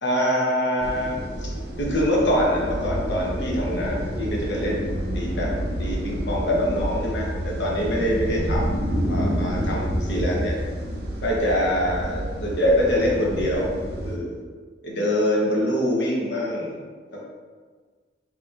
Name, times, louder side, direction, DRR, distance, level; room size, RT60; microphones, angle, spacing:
voice 1, 0.0-1.5 1.8-5.5 5.8-8.8 9.1-10.6 11.2-13.7 14.0-14.4 14.8-16.8 17.1-17.2, equal, 75° left, -3 dB, 1.0 m, -24 dB
sound 1, 0.8-14.2, equal, 60° right, 0.6 m, -29 dB
4.9 x 2.9 x 2.5 m, 1.5 s
head